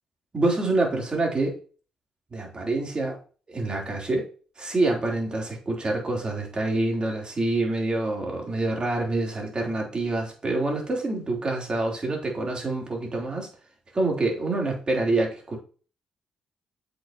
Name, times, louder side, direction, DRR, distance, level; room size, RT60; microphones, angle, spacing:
voice 1, 0.3-1.6 2.3-3.2 3.5-4.3 4.6-13.5 13.9-15.6, right 2 dB, 35° right, 0 dB, 3.4 m, -26 dB
8.1 x 6.7 x 2.9 m, 0.38 s
hypercardioid pair, 50°, 3 cm